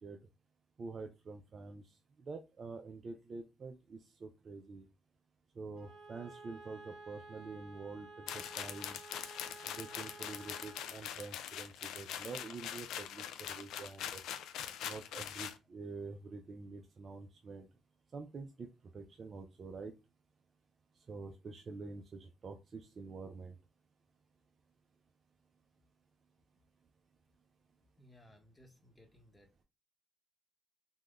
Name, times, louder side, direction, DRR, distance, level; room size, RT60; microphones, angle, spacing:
voice 1, 0.8-4.9 5.6-9.0 9.6-14.2 14.8-17.7 18.1-18.7 18.9-19.9 21.1-23.6, right 4 dB, 45° right, 0.4 m, -47 dB
Bowed string instrument, 5.7-10.9, right 3 dB, 75° right, 1.6 m, -53 dB
sound 1, 8.3-15.6, left 10 dB, 85° left, 0.3 m, -43 dB
voice 2, 28.0-29.6, left 1 dB, 15° left, 0.9 m, -62 dB
3.5 x 2.2 x 2.3 m
cardioid pair, 90°, 0 cm